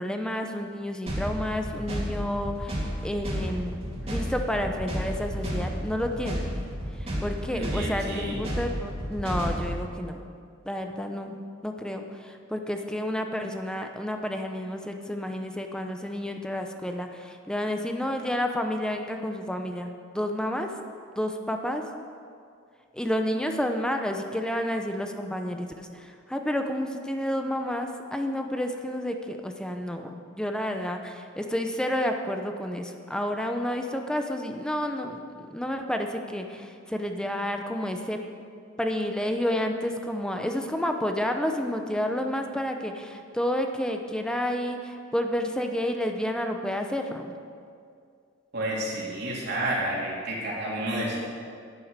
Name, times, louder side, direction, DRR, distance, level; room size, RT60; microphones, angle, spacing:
voice 1, 0.0-6.4 7.0-10.3 10.6-20.7 21.2-21.8 22.9-38.2 38.8-47.4, left 1 dB, 5° left, 4 dB, 0.7 m, -30 dB
sound 1, 1.1-9.8, equal, 30° right, 2.8 m, -32 dB
voice 2, 7.5-8.4 48.5-51.2, right 1 dB, 55° right, -4 dB, 3.3 m, -30 dB
11.0 x 10.5 x 6.6 m, 2.3 s
head